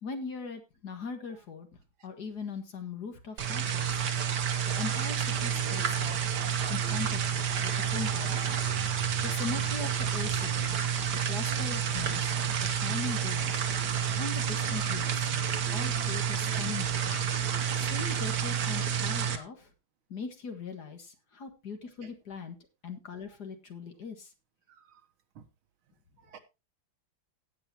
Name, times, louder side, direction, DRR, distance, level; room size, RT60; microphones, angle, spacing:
voice 1, 0.0-1.7 2.0-4.0 4.8-6.2 6.7-8.5 9.2-10.8 11.1-12.4 12.6-13.6 14.1-15.3 15.7-17.1 17.7-19.7 20.1-22.6 22.8-24.3, left 5 dB, 50° left, 2.1 m, -40 dB
sound 1, 3.4-19.4, right 8 dB, 55° right, 1.5 m, -29 dB
sound 2, 12.6-12.7 14.6-14.9 17.0-17.2 19.2-19.4, left 2 dB, 70° left, 4.6 m, -45 dB
voice 2, 24.7-25.0 25.4-25.5 26.2-26.4, right 7 dB, 75° right, 2.0 m, -52 dB
17.0 x 7.9 x 2.9 m
omnidirectional pair, 2.3 m